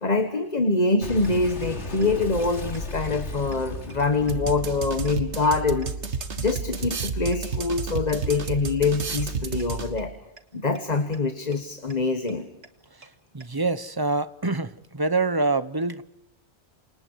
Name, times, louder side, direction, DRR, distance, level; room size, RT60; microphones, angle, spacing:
voice 1, 0.0-5.9 6.4-10.1 10.5-12.5, left 3 dB, 40° left, 1.5 m, -25 dB
sound 1, 0.9-1.0 1.2-1.3 1.6-1.7 2.0-2.1 2.4-2.5 2.7-2.8 3.1-3.2 3.5-3.6 3.9-4.0 4.3-4.4 4.7-4.8 5.1-5.2 5.4-5.5 5.8-5.9 6.2-6.3 6.6-6.7 6.9-7.0 7.3-7.4 7.7-7.8 8.1-8.2 8.5-8.6 8.8-8.9 9.2-9.3 9.6-9.7 10.0-10.1 10.4-10.5 10.7-10.8 11.1-11.2 11.5-11.6 11.9-12.0 12.3-12.4 12.6-12.7 13.0-13.1 13.4-13.5, right 3 dB, 65° right, 2.3 m, -47 dB
Boom, 1.0-6.2, left 2 dB, 85° left, 3.1 m, -36 dB
sound 2, 4.3-10.2, right 5 dB, 80° right, 1.9 m, -31 dB
voice 2, 12.9-16.0, right 3 dB, 20° right, 0.9 m, -26 dB
29.5 x 26.5 x 4.7 m
omnidirectional pair, 1.1 m